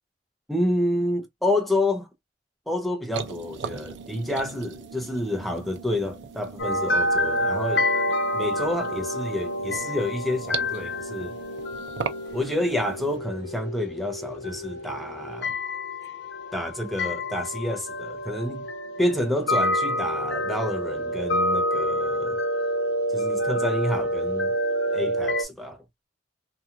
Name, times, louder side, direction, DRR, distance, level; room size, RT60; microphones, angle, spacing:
voice 1, 0.5-2.1 2.7-7.8 8.3-11.3 12.3-15.5 16.5-18.7 19.0-22.4 23.1-24.5 24.9-25.8, left 1 dB, ahead, 0.6 m, -29 dB
sound 1, 3.1-13.2, right 6 dB, 85° right, 0.5 m, -39 dB
sound 2, 6.6-25.5, left 1 dB, 85° left, 0.8 m, -28 dB
2.8 x 2.3 x 2.4 m
head